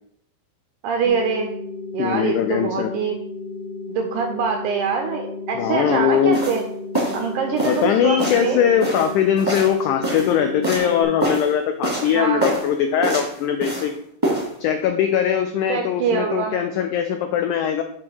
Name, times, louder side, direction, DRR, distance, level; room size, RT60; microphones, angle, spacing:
voice 1, 0.8-1.5 1.9-3.2 3.9-6.6 7.1-8.7 12.1-12.5 15.7-16.6, right 6 dB, 85° right, 4 dB, 1.8 m, -24 dB
sound 1, 1.0-11.0, left 3 dB, 75° left, 1.5 m, -34 dB
voice 2, 2.0-2.9 5.6-6.4 7.6-13.9 14.6-17.8, left 8 dB, 90° left, 6 dB, 1.7 m, -21 dB
sound 2, 6.3-6.6 6.9-7.2 7.6-7.9 8.2-8.5 8.8-10.3 10.6-10.9 11.2-11.5 11.8-12.1 12.4-12.7 13.0-13.9 14.2-14.5, right 1 dB, 15° right, 0.7 m, -25 dB
7.6 x 3.0 x 6.1 m, 0.68 s
omnidirectional pair, 4.2 m